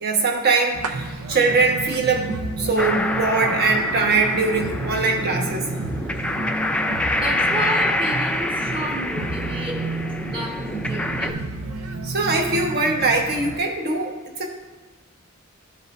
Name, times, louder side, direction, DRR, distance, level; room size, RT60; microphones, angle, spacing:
voice 1, 0.0-5.6 12.0-14.5, right 3 dB, 50° right, 1 dB, 1.2 m, -22 dB
sound 1, 0.7-13.6, right 2 dB, 90° right, 0.6 m, -31 dB
sound 2, 2.8-11.3, left 1 dB, 5° left, 0.4 m, -26 dB
voice 2, 7.1-9.8 10.2-11.6, right 1 dB, 25° right, 0 dB, 1.3 m, -31 dB
13.5 x 5.4 x 2.6 m, 1.3 s
head